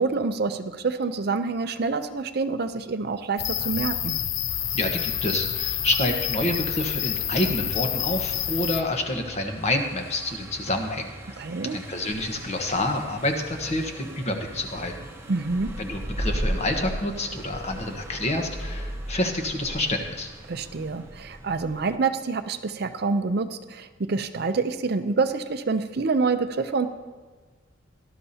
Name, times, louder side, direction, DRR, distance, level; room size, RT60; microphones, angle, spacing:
voice 1, 0.0-4.2 11.4-11.8 15.3-15.7 20.5-26.9, right 4 dB, 55° right, 9 dB, 0.6 m, -27 dB
sound 1, 3.4-8.8, left 11 dB, 70° left, 0.5 m, -28 dB
Car passing by, 4.5-22.0, right 1 dB, 15° right, 1.0 m, -38 dB
voice 2, 4.7-11.4 11.7-14.9 15.8-20.3, left 1 dB, 35° left, 4 dB, 1.2 m, -28 dB
18.0 x 12.0 x 2.8 m, 1.4 s
head